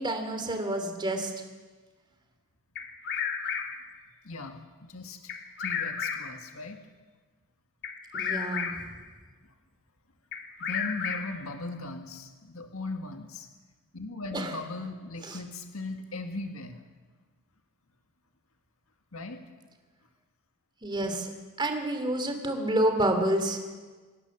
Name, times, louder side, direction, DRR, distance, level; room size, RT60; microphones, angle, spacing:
voice 1, 0.0-1.3 8.1-8.7 14.3-14.5 15.3-15.4 20.8-21.3 21.6-23.6, right 1 dB, 20° right, 5 dB, 2.9 m, -28 dB
Bird vocalization bird call bird song, 2.7-3.9 5.3-6.5 7.8-9.0 10.3-11.5, left 7 dB, 50° left, 1.7 m, -33 dB
voice 2, 4.2-6.8 9.4-9.5 10.6-13.5 13.9-16.8 19.1-19.4, left 2 dB, 65° left, 5 dB, 1.9 m, -38 dB
26.0 x 18.5 x 7.2 m, 1.4 s
head